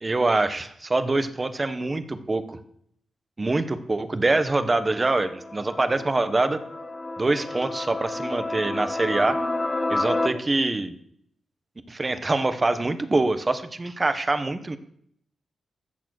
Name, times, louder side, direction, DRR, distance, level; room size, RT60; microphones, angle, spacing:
voice 1, 0.0-2.6 3.4-6.6 7.2-9.4 9.9-11.0 11.9-14.8, right 2 dB, 25° right, 11 dB, 1.1 m, -24 dB
sound 1, 4.7-10.3, left 2 dB, 30° left, 1.6 m, -30 dB
14.5 x 6.9 x 6.5 m, 0.68 s
cardioid pair, 90°, 0 cm